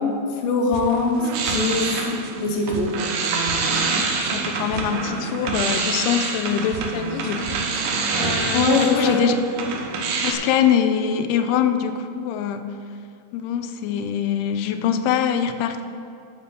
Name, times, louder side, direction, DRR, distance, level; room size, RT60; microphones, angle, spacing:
voice 1, 0.0-2.0 2.4-2.9 8.5-9.3, left 3 dB, 70° left, 1 dB, 2.8 m, -22 dB
sound 1, 0.7-8.7, right 10 dB, 85° right, 2.4 m, -38 dB
sound 2, 0.9-10.3, right 4 dB, 65° right, 2.2 m, -26 dB
voice 2, 4.2-7.6 8.2-9.4 10.2-12.8 13.3-15.8, left 9 dB, 90° left, 9 dB, 2.6 m, -23 dB
10.5 x 7.0 x 6.7 m, 2.4 s
omnidirectional pair, 4.4 m